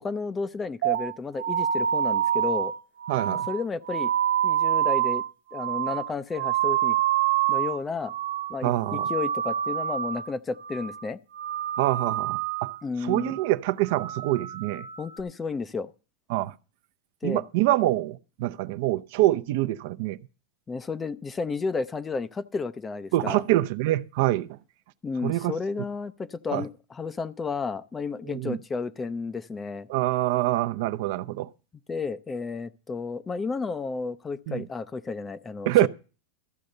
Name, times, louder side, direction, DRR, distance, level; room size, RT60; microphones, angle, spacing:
voice 1, 0.0-2.7 3.3-4.1 4.4-5.2 5.5-7.0 7.5-8.1 8.5-11.2 12.8-13.4 15.0-15.9 17.2-17.4 20.7-23.4 25.0-29.9 31.9-35.9, left 4 dB, 15° left, 0.5 m, -32 dB
sound 1, 0.8-7.8 8.1-8.6 8.8-10.3 10.6-11.0 11.3-12.8 13.1-13.5 13.8-15.2, right 10 dB, 90° right, 1.2 m, -27 dB
voice 2, 3.1-3.5 8.6-9.1 11.8-12.7 13.0-14.9 16.3-16.5 17.2-20.2 23.1-24.6 25.2-25.5 26.5-26.6 28.3-28.6 29.9-31.5 34.5-34.6 35.6-35.9, right 16 dB, 55° right, 0.6 m, -25 dB
13.5 x 6.8 x 6.5 m
supercardioid pair, 150°, 0 cm